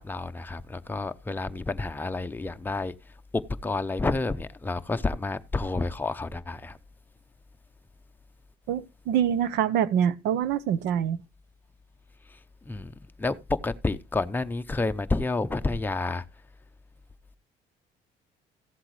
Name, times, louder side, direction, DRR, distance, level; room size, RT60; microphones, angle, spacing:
voice 1, 0.0-2.9 3.3-6.8 12.7-12.9 13.2-16.2, left 3 dB, 10° left, 0.7 m, -29 dB
voice 2, 8.7-11.2, right 9 dB, 85° right, 0.9 m, -25 dB
15.0 x 7.9 x 3.2 m
cardioid pair, 110°, 17 cm